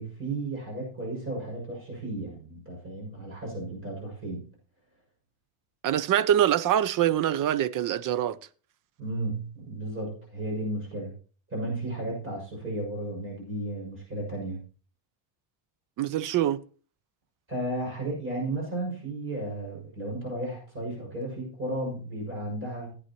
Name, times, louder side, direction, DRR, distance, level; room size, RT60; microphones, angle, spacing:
voice 1, 0.0-4.4 9.0-11.1 11.5-14.6 17.5-22.9, right 1 dB, 25° right, 6.5 m, -34 dB
voice 2, 5.8-8.4 16.0-16.6, right 11 dB, 45° right, 0.5 m, -24 dB
16.5 x 9.8 x 3.0 m
cardioid pair, 160°, 48 cm